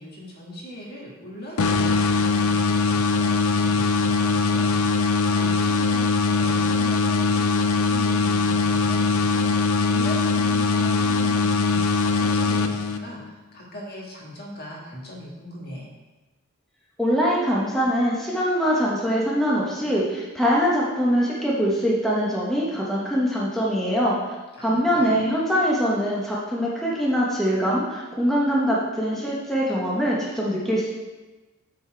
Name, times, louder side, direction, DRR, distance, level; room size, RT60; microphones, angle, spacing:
voice 1, 0.0-13.2 13.5-15.9 24.6-25.2, equal, 50° left, -3 dB, 1.6 m, -39 dB
sound 1, 1.6-13.3, left 4 dB, 85° left, 0.5 m, -21 dB
voice 2, 17.0-24.2 24.6-30.9, equal, ahead, -6 dB, 1.1 m, -23 dB
7.7 x 4.4 x 4.5 m, 1.2 s
head